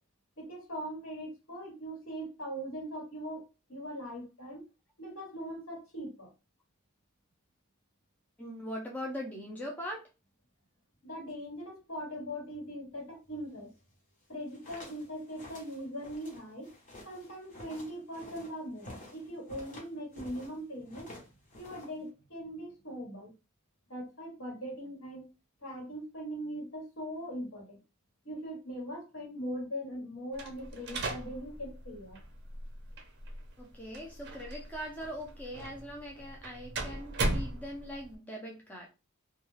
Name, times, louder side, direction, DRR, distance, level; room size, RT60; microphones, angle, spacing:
voice 1, 0.4-4.6 5.0-6.3 11.0-13.7 14.3-16.7 17.0-21.1 21.6-23.3 23.9-25.3 25.6-27.8 28.2-32.2, equal, 70° left, 1.3 m, -41 dB
voice 2, 8.4-10.0 33.6-38.9, equal, 5° left, 0.5 m, -41 dB
sound 1, 14.3-20.5 20.8-22.1, left 1 dB, 35° left, 0.9 m, -50 dB
sound 2, 30.3-38.1, right 2 dB, 50° right, 0.5 m, -38 dB
2.3 x 2.2 x 3.1 m
head